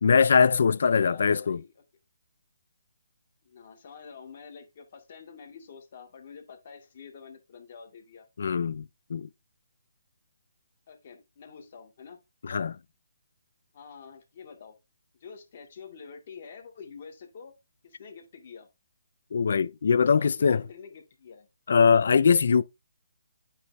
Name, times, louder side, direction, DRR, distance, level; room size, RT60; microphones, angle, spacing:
voice 1, 0.0-1.6 8.4-9.3 12.4-12.8 19.3-20.6 21.7-22.6, left 6 dB, 65° left, 0.5 m, -22 dB
voice 2, 0.9-1.7 3.4-8.3 10.9-12.2 13.7-14.8 15.2-17.5 17.8-18.7 20.2-21.5, left 6 dB, 50° left, 2.1 m, -47 dB
8.5 x 3.4 x 4.2 m
hypercardioid pair, 150°, 0 cm